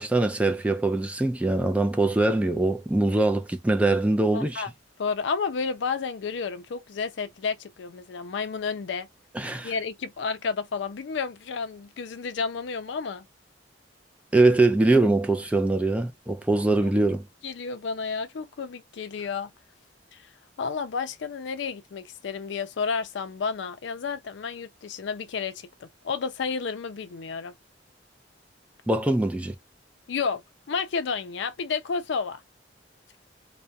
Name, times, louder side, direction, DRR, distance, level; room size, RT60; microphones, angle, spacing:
voice 1, 0.0-4.6 9.4-9.7 14.3-17.2 28.9-29.5, right 2 dB, 5° right, 0.3 m, -23 dB
voice 2, 4.3-4.7 5.0-9.1 9.6-13.3 16.8-16.9 17.4-19.5 20.1-20.3 20.6-27.5 30.1-30.4 30.7-32.4, left 5 dB, 70° left, 0.4 m, -31 dB
2.3 x 2.1 x 2.5 m
head